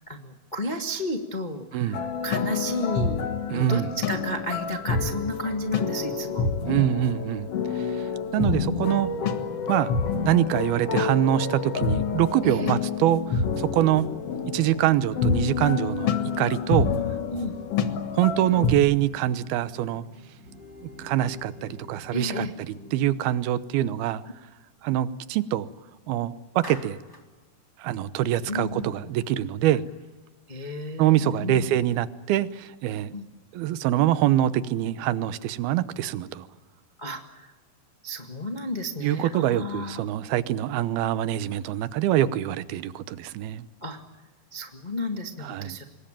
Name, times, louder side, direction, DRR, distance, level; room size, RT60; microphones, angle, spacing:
voice 1, 0.1-3.2 3.5-6.9 8.5-9.1 12.4-12.7 17.3-17.6 22.1-22.5 28.5-28.9 30.5-31.7 33.1-33.3 37.0-37.5 38.0-40.1 43.8-44.0 44.5-45.8, left 1 dB, 70° left, 4 dB, 0.4 m, -32 dB
voice 2, 1.7-2.1 3.5-3.9 6.7-7.5 7.8-9.1 9.7-14.1 14.5-16.1 16.4-16.9 17.3-17.5 18.1-20.0 21.0-22.5 22.9-24.2 24.8-25.7 26.1-27.0 27.8-29.8 31.0-33.1 33.5-36.5 39.0-43.6 45.4-45.8, right 12 dB, 80° right, 15 dB, 2.8 m, -24 dB
sound 1, 1.9-18.7, left 5 dB, 55° left, 1.8 m, -28 dB
sound 2, 8.2-23.3, right 2 dB, 15° right, 7.6 m, -46 dB
Clapping, 26.6-27.3, left 1 dB, 5° left, 2.6 m, -42 dB
26.5 x 22.0 x 8.9 m, 1.2 s
omnidirectional pair, 4.5 m